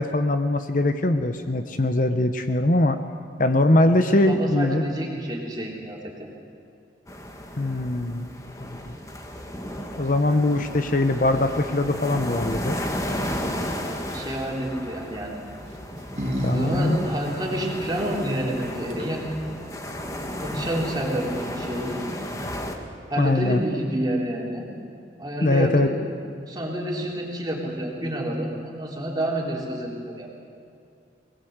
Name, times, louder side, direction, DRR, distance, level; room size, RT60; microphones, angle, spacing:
voice 1, 0.0-3.0 3.4-4.8 7.6-8.3 8.6-9.0 10.0-12.8 16.4-17.0 23.2-23.6 25.4-25.9, left 1 dB, 45° left, 8 dB, 0.9 m, -22 dB
voice 2, 4.0-6.3 14.1-15.4 16.5-22.1 23.1-24.7 25.2-25.9 26.5-30.4, right 1 dB, 20° right, -2 dB, 3.6 m, -29 dB
sound 1, 7.1-22.8, equal, 20° left, 1.7 m, -33 dB
sound 2, 14.1-14.5 15.5-16.6 16.8-16.9 18.6-18.7 18.9-19.3, equal, 35° right, 2.5 m, -31 dB
23.0 x 19.5 x 8.0 m, 2.5 s
head